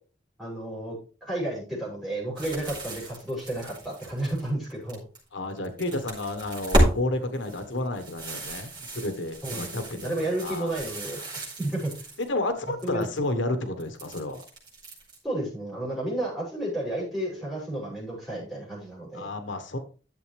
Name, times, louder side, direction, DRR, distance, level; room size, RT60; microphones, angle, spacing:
voice 1, 0.4-0.9 1.2-5.0 9.4-11.2 11.6-11.9 12.8-13.1 15.2-19.3, right 1 dB, ahead, -6 dB, 6.5 m, -32 dB
sound 1, 2.4-5.2 5.6-6.9 7.3-12.3 12.6-13.2 13.8-15.2, right 1 dB, 25° right, 4.9 m, -31 dB
voice 2, 5.3-10.8 12.2-14.4 19.1-19.8, left 2 dB, 90° left, 9 dB, 1.4 m, -31 dB
12.0 x 7.6 x 3.4 m, 0.36 s
head